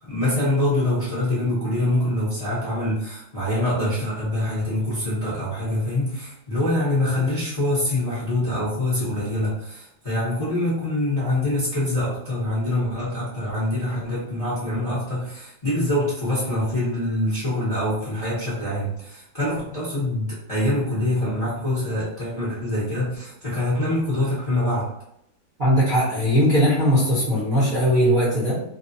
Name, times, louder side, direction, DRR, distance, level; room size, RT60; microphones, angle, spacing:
voice 1, 0.0-24.9, left 1 dB, 25° left, -9 dB, 0.8 m, -25 dB
voice 2, 25.6-28.6, equal, 35° right, -10 dB, 0.9 m, -19 dB
3.2 x 2.4 x 2.6 m, 0.76 s
omnidirectional pair, 2.1 m